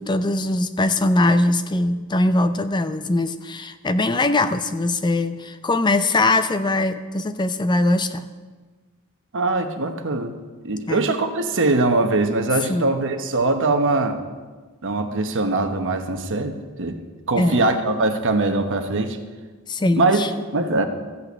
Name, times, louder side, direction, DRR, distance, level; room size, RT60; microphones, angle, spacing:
voice 1, 0.0-8.3 10.9-11.1 12.7-12.9 17.4-17.7 19.7-20.3, left 2 dB, 20° left, 10 dB, 0.4 m, -21 dB
voice 2, 9.3-10.3 10.6-14.2 14.8-17.0 17.3-19.2 19.9-20.9, right 2 dB, 60° right, 6 dB, 1.1 m, -22 dB
14.5 x 5.7 x 8.0 m, 1.4 s
head